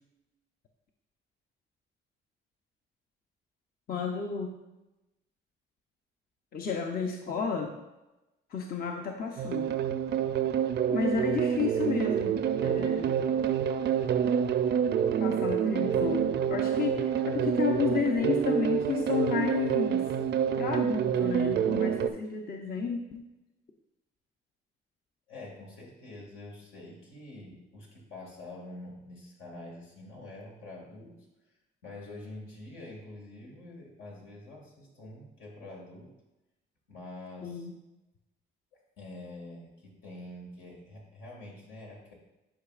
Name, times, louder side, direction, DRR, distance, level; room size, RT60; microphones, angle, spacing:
voice 1, 3.9-4.6 6.5-7.7 8.5-9.7 10.9-13.2 15.2-20.1 20.5-23.3 37.4-37.7, left 6 dB, 50° left, 3 dB, 0.6 m, -32 dB
sound 1, 9.4-22.1, right 8 dB, 60° right, 0.4 m, -27 dB
voice 2, 25.3-31.2 31.8-36.1 36.9-37.7 38.7-42.1, left 2 dB, 90° left, -3 dB, 2.1 m, -46 dB
10.0 x 4.8 x 2.4 m, 1.0 s
cardioid pair, 90°, 20 cm